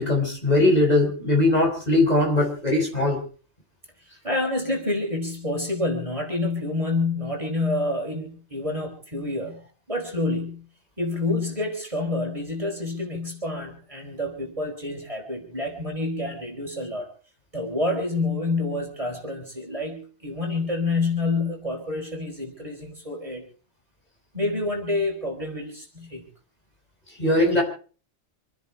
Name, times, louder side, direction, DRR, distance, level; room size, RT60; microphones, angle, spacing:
voice 1, 0.0-3.2 27.2-27.6, left 2 dB, 35° left, 0 dB, 5.8 m, -20 dB
voice 2, 4.2-9.6 9.9-10.6 11.0-17.1 17.5-23.4 24.3-26.2 27.5-27.6, left 2 dB, 30° right, 0 dB, 5.0 m, -28 dB
27.5 x 10.0 x 4.5 m, 0.41 s
omnidirectional pair, 1.1 m